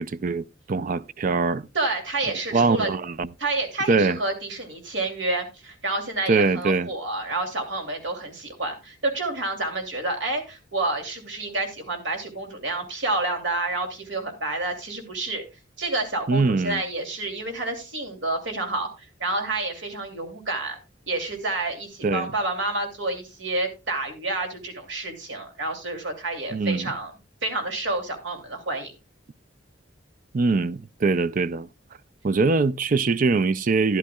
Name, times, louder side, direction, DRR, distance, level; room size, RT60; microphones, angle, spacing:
voice 1, 0.0-1.7 2.5-3.3 3.9-4.2 6.3-6.9 16.3-16.8 22.0-22.3 26.5-26.9 30.3-31.7 32.2-34.0, right 4 dB, 45° right, 0.4 m, -22 dB
voice 2, 1.7-2.9 3.4-15.4 15.8-20.8 21.1-27.1 27.4-28.9, right 2 dB, 70° right, 2.7 m, -29 dB
13.0 x 10.5 x 2.3 m
head